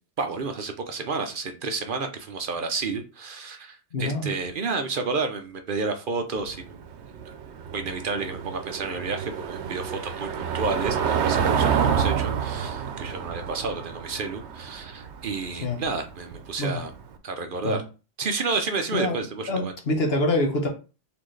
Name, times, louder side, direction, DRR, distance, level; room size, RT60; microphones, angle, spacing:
voice 1, 0.2-6.8 7.2-7.3 7.7-16.9 17.2-17.8 18.2-19.7, right 4 dB, 55° right, 7 dB, 0.8 m, -31 dB
voice 2, 3.9-4.3 15.6-15.8 16.6-16.8 17.6-17.8 18.9-19.2 19.5-20.7, left 1 dB, 65° left, 2 dB, 1.3 m, -25 dB
Car passing by / Engine, 6.4-17.0, right 7 dB, 85° right, 0.9 m, -28 dB
4.3 x 3.7 x 3.1 m, 0.33 s
omnidirectional pair, 1.1 m